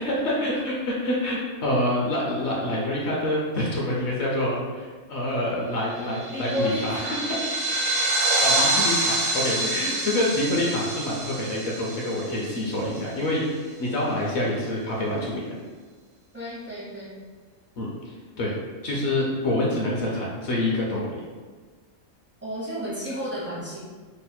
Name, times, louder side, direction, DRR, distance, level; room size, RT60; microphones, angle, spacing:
voice 1, 0.0-7.0 8.4-15.5 17.8-17.9 18.4-18.5 18.8-21.2, left 1 dB, 60° left, -3 dB, 0.8 m, -26 dB
sound 1, 6.1-12.9, right 2 dB, 70° right, 0.9 m, -26 dB
voice 2, 6.3-7.2 9.4-9.9 16.3-17.1 22.4-23.8, equal, 20° right, -9 dB, 0.4 m, -32 dB
3.1 x 2.1 x 4.2 m, 1.4 s
omnidirectional pair, 1.4 m